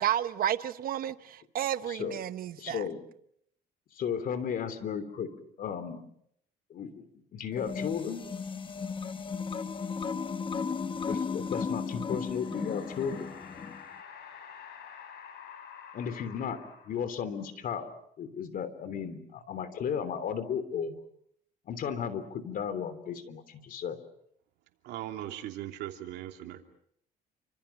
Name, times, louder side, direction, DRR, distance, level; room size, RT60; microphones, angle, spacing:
voice 1, 0.0-2.8, right 11 dB, 60° right, 1.0 m, -31 dB
voice 2, 1.9-2.2 2.6-3.0 3.9-5.3 5.6-6.0 6.7-7.0 7.3-8.2 11.0-13.3 15.9-16.6 16.9-17.9 18.2-21.0 21.7-24.0, left 7 dB, 55° left, 3.2 m, -34 dB
sound 1, 7.5-13.8, left 5 dB, 30° left, 1.1 m, -35 dB
sound 2, 12.2-17.3, left 7 dB, 75° left, 6.5 m, -48 dB
voice 3, 24.8-26.6, right 13 dB, 85° right, 3.0 m, -39 dB
29.0 x 26.5 x 5.9 m
cardioid pair, 110°, 17 cm